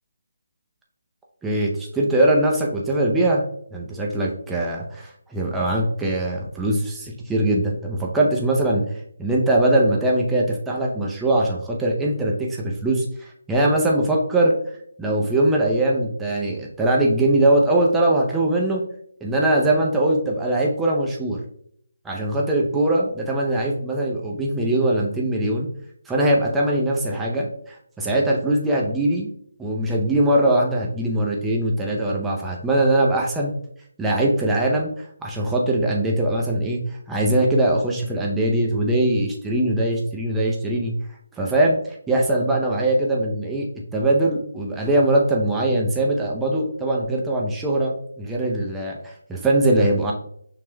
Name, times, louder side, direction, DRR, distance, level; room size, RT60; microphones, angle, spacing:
voice 1, 1.4-3.4 3.7-8.8 9.2-14.5 15.0-18.8 19.2-21.4 22.0-25.7 26.1-27.5 28.0-29.3 29.6-33.5 34.0-34.9 35.2-36.8 37.1-40.9 41.4-41.8 42.1-43.7 43.9-50.1, right 1 dB, 5° right, -2 dB, 0.6 m, -21 dB
5.9 x 3.3 x 2.2 m, 0.66 s
figure-of-eight pair, 160°, 0 cm